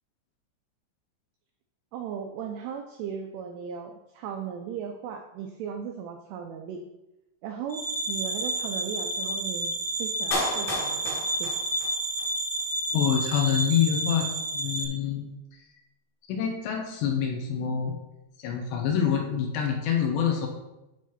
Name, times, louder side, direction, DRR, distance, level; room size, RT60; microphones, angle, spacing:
voice 1, 1.9-6.8 7.4-11.5, right 7 dB, 90° right, 4 dB, 2.4 m, -37 dB
sound 1, 7.7-14.8, right 1 dB, 50° right, 1.3 m, -30 dB
Clapping, 10.3-12.3 12.6-12.7, left 1 dB, 50° left, 2.3 m, -32 dB
voice 2, 12.9-14.3 14.5-15.3 16.3-18.0 18.4-20.5, left 8 dB, 75° left, 2 dB, 2.9 m, -26 dB
10.5 x 3.6 x 5.7 m, 0.96 s
omnidirectional pair, 5.6 m